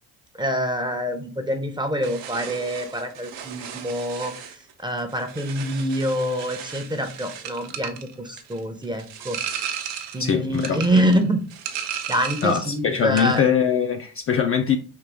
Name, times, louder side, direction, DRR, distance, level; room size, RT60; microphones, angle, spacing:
voice 1, 0.4-4.3 4.8-9.4 10.1-11.4 12.1-13.4, equal, 10° right, 0.6 m, -25 dB
sound 1, 2.0-12.7 13.0-13.5, right 8 dB, 65° right, 0.8 m, -35 dB
voice 2, 10.2-10.8 12.4-14.8, left 7 dB, 30° left, 0.5 m, -22 dB
3.9 x 2.7 x 3.4 m
hypercardioid pair, 60°, 47 cm